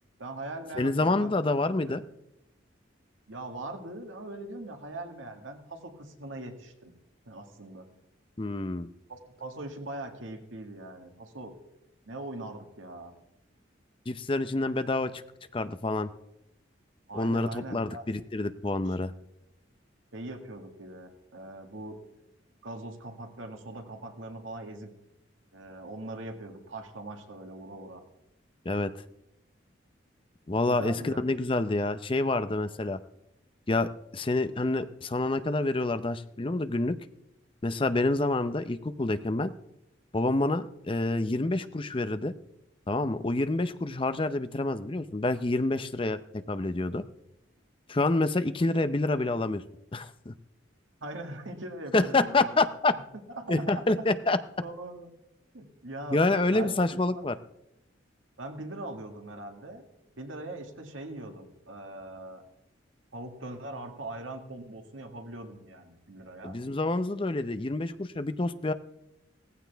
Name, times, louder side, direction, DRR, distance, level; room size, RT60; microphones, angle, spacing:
voice 1, 0.2-1.6 3.3-6.9 7.3-7.9 9.1-11.5 12.1-13.1 17.1-18.0 18.9-19.0 20.1-22.0 22.6-24.9 25.5-28.0 30.7-31.2 51.0-52.6 53.3-53.9 54.6-55.1 55.5-56.8 57.2-57.3 58.4-59.9 60.2-62.4 63.1-66.6, right 2 dB, 85° right, 4 dB, 1.9 m, -41 dB
voice 2, 0.8-2.0 8.4-8.9 14.1-15.2 15.5-16.1 17.1-19.1 28.6-28.9 30.5-33.0 33.7-37.0 37.6-39.5 40.1-42.3 42.9-46.2 46.5-47.0 47.9-49.6 49.9-50.3 51.9-52.9 53.5-54.4 56.1-57.4 66.4-68.7, left 2 dB, 25° left, 11 dB, 0.6 m, -27 dB
17.0 x 15.0 x 3.4 m, 0.84 s
head